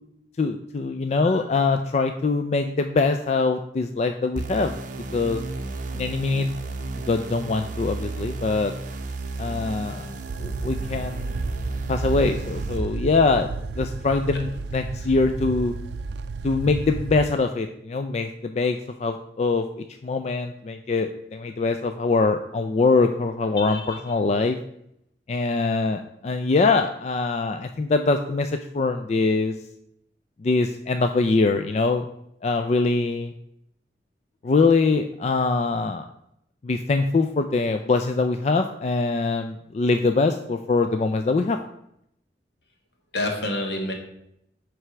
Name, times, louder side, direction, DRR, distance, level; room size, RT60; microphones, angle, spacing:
voice 1, 0.4-4.7 5.1-5.4 5.9-6.5 7.0-8.7 9.4-10.1 10.4-11.4 11.9-13.5 13.8-15.7 16.4-19.6 20.0-24.6 25.3-29.5 30.4-32.1 32.4-33.3 34.4-36.0 36.6-41.6, left 3 dB, 40° left, 6 dB, 0.3 m, -23 dB
sound 1, 4.4-12.8, right 2 dB, 45° right, 0.7 m, -33 dB
sound 2, 8.9-17.3, right 4 dB, 85° right, 0.4 m, -33 dB
voice 2, 23.7-24.0 43.1-43.9, left 1 dB, 75° left, 2 dB, 1.5 m, -28 dB
7.8 x 3.3 x 5.9 m, 0.76 s
head